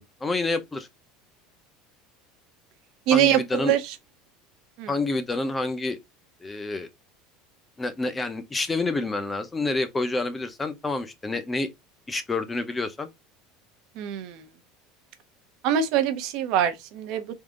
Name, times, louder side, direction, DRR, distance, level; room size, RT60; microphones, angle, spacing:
voice 1, 0.2-0.9 3.1-3.7 4.9-6.0 6.4-6.9 7.8-11.7 12.1-13.1, left 2 dB, 10° left, 0.6 m, -28 dB
voice 2, 3.1-3.9 4.8-4.9 14.0-14.4 15.6-17.2, right 10 dB, 55° right, 0.7 m, -24 dB
3.7 x 2.6 x 3.6 m
cardioid pair, 160°, 0 cm